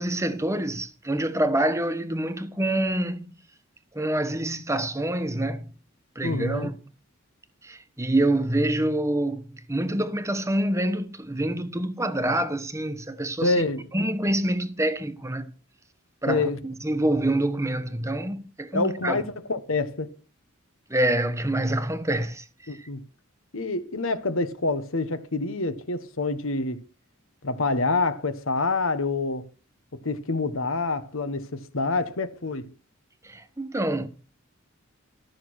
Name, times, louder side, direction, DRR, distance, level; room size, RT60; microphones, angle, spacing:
voice 1, 0.0-3.3 3.9-5.7 6.1-6.7 7.6-13.5 13.9-15.5 16.2-19.2 20.9-22.4 33.2-34.1, right 1 dB, 15° right, 1.2 m, -26 dB
voice 2, 6.2-6.7 13.4-13.9 16.3-16.6 18.7-20.1 22.7-23.0 23.5-26.8 27.4-29.5 29.9-32.7, left 3 dB, 75° left, 1.4 m, -27 dB
13.0 x 6.6 x 6.3 m
head